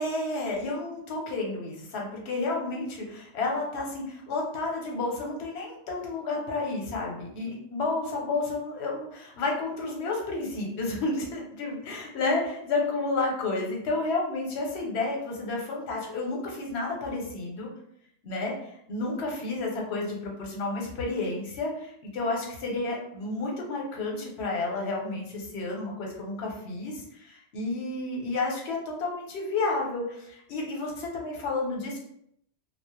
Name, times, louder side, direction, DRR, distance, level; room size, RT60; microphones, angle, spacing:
voice 1, 0.0-17.7 18.2-32.0, left 3 dB, 70° left, 0 dB, 0.9 m, -31 dB
2.2 x 2.0 x 2.9 m, 0.71 s
omnidirectional pair, 1.2 m